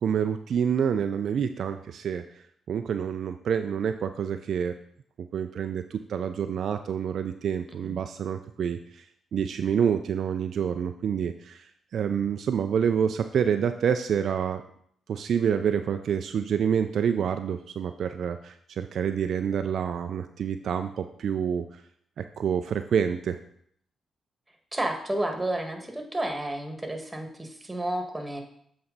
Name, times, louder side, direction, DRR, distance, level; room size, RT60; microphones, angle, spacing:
voice 1, 0.0-2.2 2.7-4.7 5.3-9.0 9.3-11.7 11.9-14.6 15.1-21.6 22.2-23.4, right 7 dB, 65° right, 8 dB, 0.3 m, -27 dB
voice 2, 24.7-28.4, right 1 dB, 15° right, 4 dB, 1.7 m, -31 dB
7.8 x 4.2 x 3.9 m, 0.66 s
hypercardioid pair, 40°, 0 cm